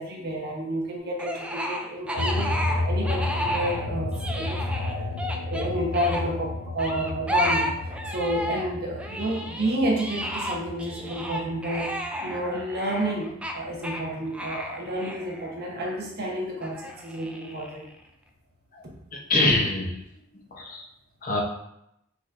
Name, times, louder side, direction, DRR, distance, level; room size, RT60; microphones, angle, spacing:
voice 1, 0.0-5.1 5.4-7.7 8.1-11.9 12.2-17.9 19.6-19.7, right 1 dB, 55° right, -2 dB, 1.1 m, -30 dB
sound 1, 1.2-6.2 6.8-8.7 9.0-16.0 16.6-17.9, equal, 5° right, 0.3 m, -32 dB
sound 2, 2.2-13.1 13.4-14.9, left 2 dB, 80° left, 0.6 m, -32 dB
voice 2, 19.1-20.0 20.5-20.8 21.2-21.4, left 2 dB, 45° left, -1 dB, 0.8 m, -24 dB
4.5 x 4.0 x 2.5 m, 0.79 s
head